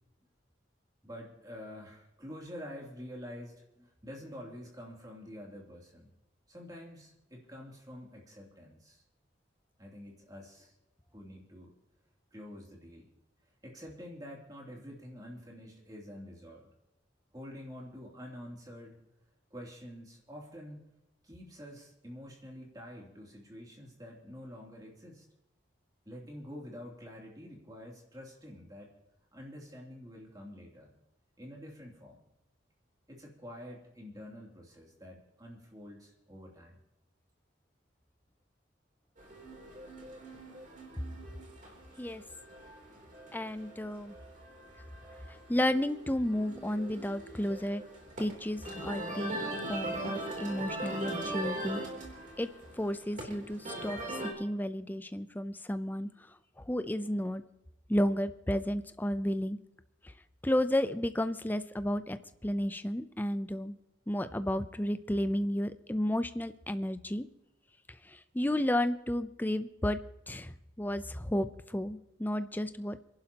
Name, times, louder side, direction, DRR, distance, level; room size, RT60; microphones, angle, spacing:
voice 1, 1.0-6.1 6.5-9.0 9.8-10.7 11.1-11.7 12.3-13.1 13.6-16.7 17.3-19.0 19.5-20.8 21.2-25.2 26.0-28.9 29.3-30.9 31.4-32.2 33.1-36.8, equal, 20° right, -1 dB, 3.0 m, -47 dB
sound 1, 39.2-54.3, right 1 dB, 40° right, 3.4 m, -41 dB
voice 2, 43.3-44.1 45.5-47.8 48.2-49.4 49.7-51.8 52.4-52.5 52.8-56.1 56.6-57.4 57.9-59.6 60.4-62.2 62.4-63.8 64.1-67.3 68.1-70.0 70.3-70.5 70.8-73.0, left 1 dB, 10° left, 11 dB, 0.5 m, -32 dB
27.0 x 11.5 x 2.9 m, 0.90 s
head